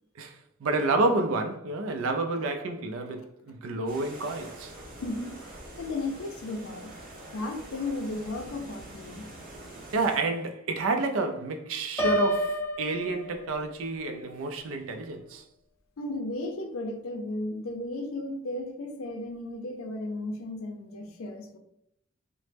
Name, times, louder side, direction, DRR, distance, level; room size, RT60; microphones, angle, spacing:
voice 1, 0.2-4.7 9.9-15.4, right 3 dB, 75° right, 0.4 m, -29 dB
sound 1, 3.9-10.2, right 1 dB, 45° right, 0.7 m, -45 dB
voice 2, 5.0-5.3 5.8-7.0 7.3-9.3 16.0-21.6, left 2 dB, 80° left, 0.5 m, -34 dB
Piano, 12.0-13.9, equal, 10° left, 0.3 m, -29 dB
3.0 x 2.0 x 3.2 m
head